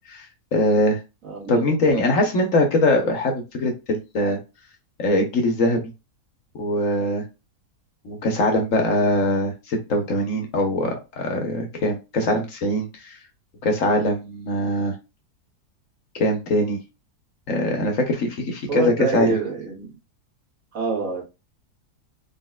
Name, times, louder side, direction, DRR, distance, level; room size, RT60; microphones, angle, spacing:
voice 1, 0.1-1.0 1.5-4.4 5.0-5.8 6.5-7.2 8.0-13.2 13.6-14.9 16.1-16.8 17.5-19.3, left 1 dB, 60° left, 1.2 m, -22 dB
voice 2, 1.2-2.2 18.7-20.0 20.7-21.2, right 5 dB, 60° right, 1.8 m, -26 dB
4.0 x 3.7 x 2.2 m
omnidirectional pair, 1.7 m